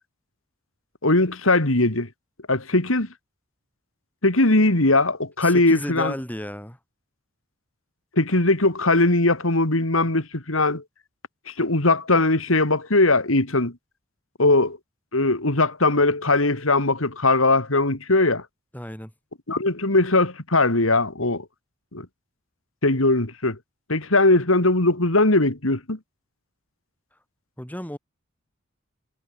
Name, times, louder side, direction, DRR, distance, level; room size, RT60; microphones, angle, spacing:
voice 1, 1.0-2.1 2.5-3.1 4.2-6.1 8.2-10.8 11.5-13.7 14.4-14.8 15.1-18.4 19.5-21.4 21.9-22.1 22.8-23.6 23.9-26.0, left 2 dB, 90° left, 3.3 m, -20 dB
voice 2, 5.4-6.8 18.7-19.1 27.6-28.0, equal, 10° left, 4.4 m, -33 dB
head